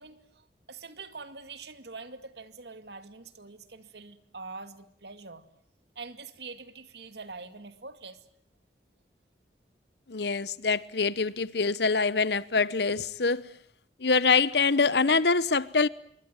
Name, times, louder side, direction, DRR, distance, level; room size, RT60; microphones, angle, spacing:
voice 1, 0.0-5.4 6.0-8.2, right 4 dB, 70° right, 2.3 m, -44 dB
voice 2, 10.1-13.5 14.0-15.9, left 4 dB, 70° left, 1.0 m, -25 dB
26.0 x 23.5 x 8.9 m
head